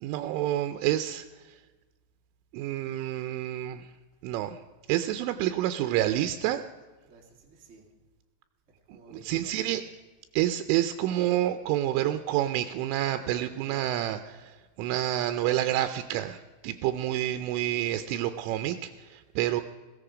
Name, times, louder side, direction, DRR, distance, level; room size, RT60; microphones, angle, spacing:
voice 1, 0.0-1.6 2.5-3.9 4.2-4.6 4.9-6.6 9.2-9.8 10.3-19.6, right 13 dB, 85° right, 10 dB, 3.0 m, -28 dB
voice 2, 7.0-7.9 8.7-9.7, right 3 dB, 35° right, 0 dB, 1.1 m, -54 dB
16.0 x 15.0 x 4.9 m, 1.3 s
omnidirectional pair, 5.6 m